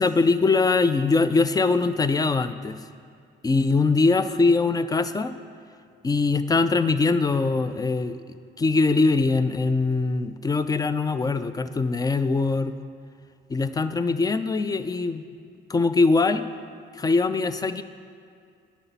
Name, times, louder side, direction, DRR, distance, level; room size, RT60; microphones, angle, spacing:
voice 1, 0.0-2.8 3.4-5.3 6.0-8.2 8.6-12.8 13.5-15.2 15.7-16.4 17.0-17.8, left 3 dB, 20° left, 12 dB, 0.3 m, -22 dB
9.9 x 5.8 x 4.0 m, 2.3 s
cardioid pair, 90°, 20 cm